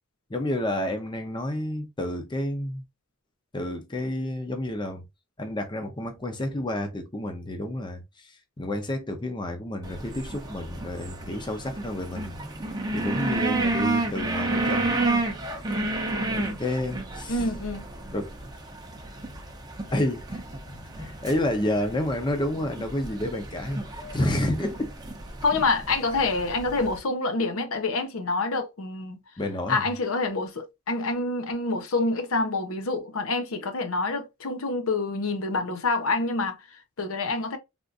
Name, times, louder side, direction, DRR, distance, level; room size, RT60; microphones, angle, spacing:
voice 1, 0.3-2.8 3.5-5.0 5.4-8.0 8.6-12.4 12.9-15.1 15.7-15.8 16.2-17.4 18.1-18.3 19.9-20.4 20.7-23.8 24.1-24.9 26.2-26.3 29.4-29.8, left 1 dB, 20° left, 0.6 m, -30 dB
sound 1, 9.8-27.0, right 2 dB, 20° right, 0.6 m, -31 dB
voice 2, 17.3-17.8 25.4-29.2 29.7-37.6, left 3 dB, 80° left, 0.7 m, -27 dB
3.5 x 2.4 x 2.5 m
head